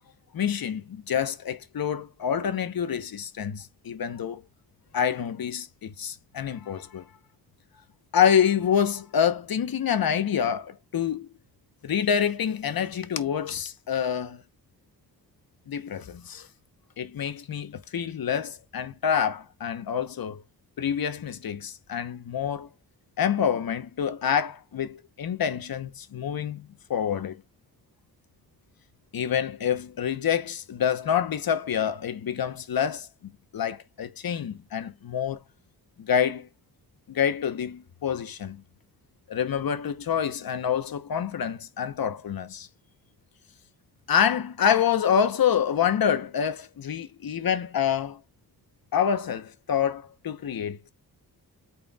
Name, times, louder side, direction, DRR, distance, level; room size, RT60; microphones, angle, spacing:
voice 1, 0.3-4.4 4.9-7.1 8.1-11.3 11.8-14.4 15.7-16.5 17.0-20.4 20.8-22.7 23.2-27.4 29.1-33.1 33.5-35.4 36.0-36.5 37.1-38.6 39.3-42.7 44.1-48.2 48.9-50.9, left 8 dB, 65° left, 1.0 m, -27 dB
8.9 x 4.5 x 2.3 m
wide cardioid pair, 155°, 38 cm